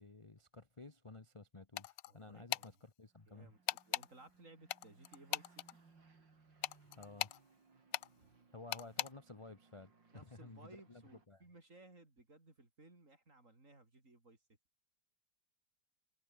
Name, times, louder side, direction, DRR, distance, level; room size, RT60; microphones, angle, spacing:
voice 1, 0.0-3.5 7.0-7.3 8.5-11.4, left 3 dB, 20° left, 1.1 m, -54 dB
sound 1, 1.8-2.1 2.5-2.7 3.7-4.1 4.7-5.7 6.6-7.4 7.9-8.1 8.7-9.1, left 15 dB, 80° left, 1.3 m, -38 dB
voice 2, 2.1-2.8 3.3-5.6 8.2-8.3 10.1-14.4, right 2 dB, 45° right, 5.0 m, -60 dB
sound 2, 3.0-11.3, right 4 dB, 85° right, 4.3 m, -68 dB
omnidirectional pair, 1.9 m